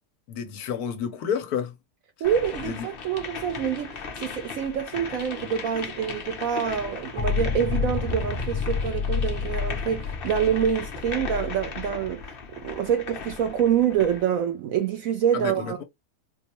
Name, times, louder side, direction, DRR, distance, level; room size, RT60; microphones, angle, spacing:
voice 1, 0.3-1.7 2.6-2.9 15.3-15.8, left 7 dB, 70° left, 1.1 m, -30 dB
sound 1, 2.2-14.3, left 5 dB, 50° left, 0.7 m, -38 dB
voice 2, 2.2-12.2 12.6-15.8, right 8 dB, 70° right, 0.8 m, -26 dB
sound 2, 7.2-12.9, left 5 dB, 30° left, 1.0 m, -29 dB
4.3 x 2.1 x 2.8 m
omnidirectional pair, 1.8 m